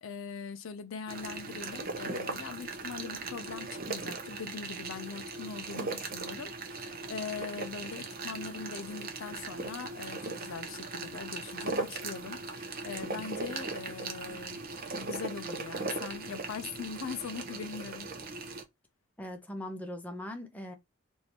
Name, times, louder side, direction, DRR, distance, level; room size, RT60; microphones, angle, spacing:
voice 1, 0.0-18.1, left 5 dB, 65° left, 0.4 m, -41 dB
sound 1, 1.1-18.6, right 3 dB, 40° right, 0.6 m, -39 dB
voice 2, 19.2-20.7, left 1 dB, 5° left, 0.5 m, -40 dB
3.3 x 2.6 x 2.9 m
head